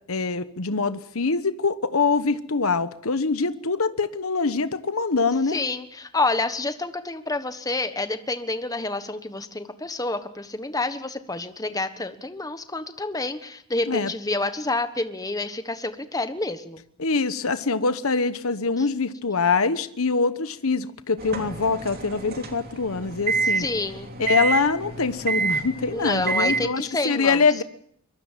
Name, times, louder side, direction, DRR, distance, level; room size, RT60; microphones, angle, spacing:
voice 1, 0.1-5.6 13.9-14.1 17.0-23.7 24.2-27.6, left 4 dB, 70° left, 13 dB, 1.1 m, -24 dB
voice 2, 5.5-16.8 23.6-24.1 25.9-27.4, left 2 dB, 15° left, 10 dB, 1.3 m, -28 dB
sound 1, 21.2-26.7, right 4 dB, 45° right, 3.1 m, -28 dB
24.5 x 22.5 x 7.5 m, 0.66 s
head